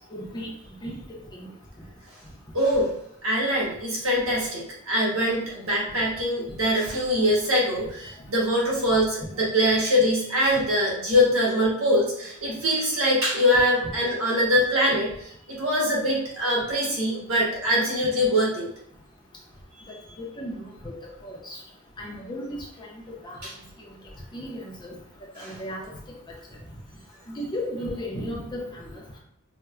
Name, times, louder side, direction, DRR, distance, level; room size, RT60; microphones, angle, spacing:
voice 1, 0.1-0.5 0.8-1.0 1.3-1.5 20.4-21.0 21.2-21.6 22.0-22.9 23.2-23.4 24.3-25.0 25.4-25.9 27.4-29.2, equal, 20° left, -3 dB, 0.6 m, -35 dB
voice 2, 2.5-2.9 3.2-18.7 23.4-23.5 25.4-25.6, equal, 80° right, -4 dB, 1.1 m, -23 dB
4.3 x 2.1 x 2.3 m, 0.72 s
head